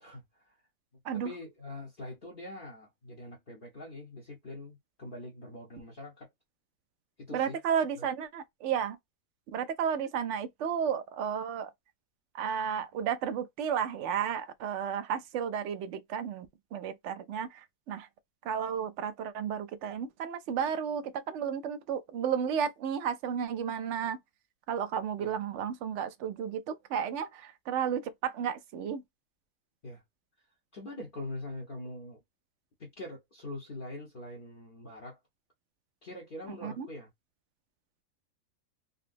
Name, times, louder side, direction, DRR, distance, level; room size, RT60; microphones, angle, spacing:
voice 1, 0.0-0.6 1.2-6.3 7.2-7.6 8.0-8.1 25.2-25.4 29.8-30.0 30.7-32.2 32.8-35.2 36.0-37.1, left 1 dB, 40° left, 1.0 m, -43 dB
voice 2, 7.3-9.0 9.5-11.7 12.3-18.1 18.4-24.2 24.7-29.0 36.6-36.9, right 8 dB, 65° right, 0.8 m, -33 dB
3.8 x 2.1 x 2.5 m
omnidirectional pair, 1.5 m